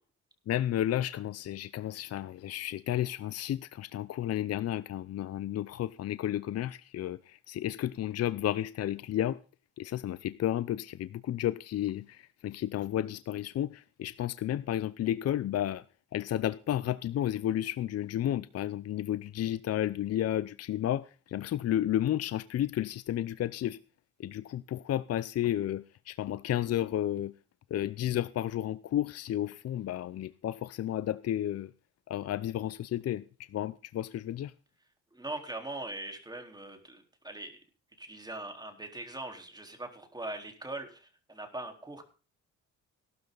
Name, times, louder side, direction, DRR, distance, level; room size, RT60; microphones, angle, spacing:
voice 1, 0.5-9.4 9.8-15.8 16.1-23.8 24.2-27.3 27.7-31.7 32.1-34.5, left 12 dB, 55° left, 0.6 m, -32 dB
voice 2, 35.1-37.6 38.0-42.0, right 2 dB, 15° right, 3.9 m, -41 dB
17.5 x 12.5 x 4.0 m
cardioid pair, 90°, 30 cm